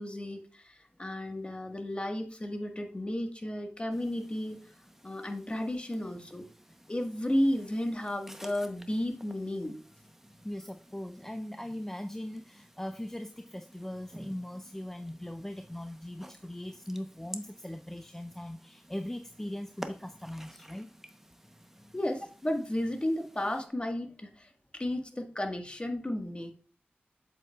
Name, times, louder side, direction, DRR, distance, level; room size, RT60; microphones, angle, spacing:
voice 1, 0.0-4.7 5.0-6.4 6.9-9.8 21.9-26.5, left 1 dB, 30° left, 1.5 m, -33 dB
sound 1, 3.9-23.7, equal, 10° right, 0.9 m, -52 dB
voice 2, 10.4-20.9, left 1 dB, 10° left, 0.5 m, -40 dB
7.9 x 7.6 x 2.4 m
wide cardioid pair, 55°, 4 cm